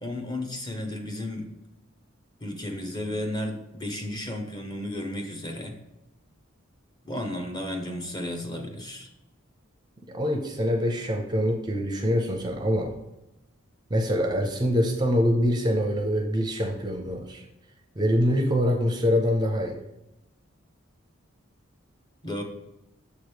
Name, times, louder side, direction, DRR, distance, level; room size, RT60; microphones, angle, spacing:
voice 1, 0.0-1.5 2.4-5.8 7.0-9.1 22.2-22.4, left 1 dB, 20° left, 3 dB, 0.7 m, -33 dB
voice 2, 10.1-13.0 13.9-17.4 18.0-19.8, equal, 20° right, 3 dB, 0.5 m, -24 dB
6.8 x 3.1 x 4.9 m, 0.90 s
head